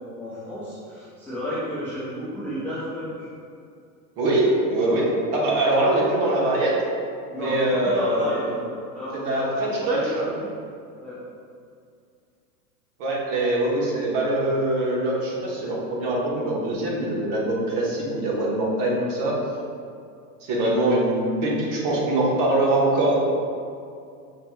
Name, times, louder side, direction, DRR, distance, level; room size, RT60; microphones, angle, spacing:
voice 1, 0.2-3.3 7.3-8.6 8.9-10.5 11.0-11.2, left 1 dB, 5° left, -13 dB, 0.4 m, -32 dB
voice 2, 4.2-6.8 7.3-8.5 9.1-10.3 13.0-19.3 20.4-23.2, right 1 dB, 50° right, -4 dB, 1.1 m, -23 dB
5.3 x 2.9 x 2.2 m, 2.4 s
supercardioid pair, 130°, 49 cm